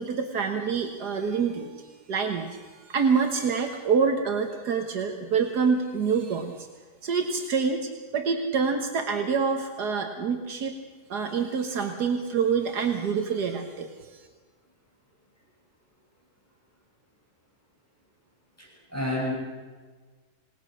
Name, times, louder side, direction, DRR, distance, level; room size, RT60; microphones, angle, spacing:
voice 1, 0.0-6.7 7.0-10.7 11.1-14.3, right 5 dB, 80° right, 4 dB, 1.9 m, -27 dB
voice 2, 18.6-19.3, left 1 dB, 10° left, -4 dB, 6.8 m, -30 dB
28.0 x 18.5 x 6.5 m, 1.4 s
omnidirectional pair, 1.7 m